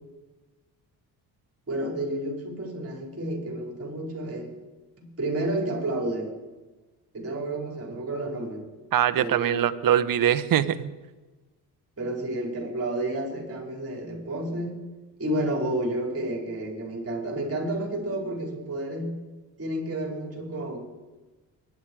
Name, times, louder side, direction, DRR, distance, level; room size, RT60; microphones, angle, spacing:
voice 1, 1.7-4.5 5.0-6.3 7.1-8.6 9.2-9.7 12.0-14.8 15.2-19.1 19.6-20.8, right 1 dB, 35° right, 1 dB, 5.5 m, -30 dB
voice 2, 8.9-10.9, right 10 dB, 55° right, 13 dB, 1.0 m, -23 dB
23.5 x 10.5 x 4.9 m, 1.2 s
cardioid pair, 90°, 40 cm